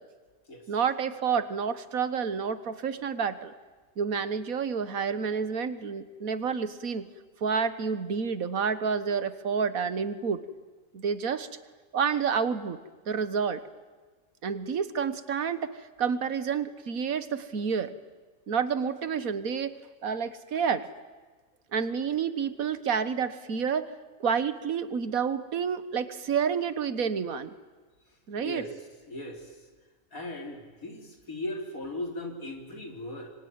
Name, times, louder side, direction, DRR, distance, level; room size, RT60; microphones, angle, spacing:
voice 1, 0.7-3.5 4.0-7.1 7.4-10.4 10.9-11.5 11.9-12.8 13.1-13.6 14.4-18.0 18.5-19.8 20.0-20.9 21.7-23.9 24.2-27.5 28.3-28.7, right 6 dB, 85° right, 13 dB, 1.7 m, -29 dB
voice 2, 28.4-28.7 29.1-29.6 30.1-33.3, left 1 dB, 85° left, 3 dB, 4.2 m, -37 dB
25.0 x 25.0 x 9.4 m, 1.4 s
omnidirectional pair, 1.4 m